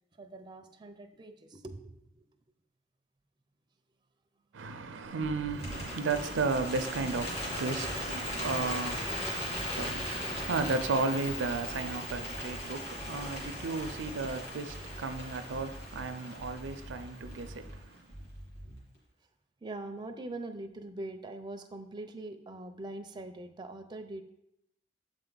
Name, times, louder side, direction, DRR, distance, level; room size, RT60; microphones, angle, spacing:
voice 1, 0.1-2.3 19.6-24.2, right 2 dB, 25° right, 0.5 m, -43 dB
voice 2, 4.5-18.0, right 3 dB, 80° right, 0.5 m, -34 dB
sound 1, 5.2-5.8 6.1-7.5 7.8-9.2 9.5-10.9 11.2-12.6 13.0-14.3 14.7-16.1 16.4-17.8 18.1-18.8, equal, 75° left, 2.7 m, -46 dB
Bird, 5.5-17.7, left 1 dB, 35° left, 2.1 m, -39 dB
7.6 x 4.4 x 3.9 m
head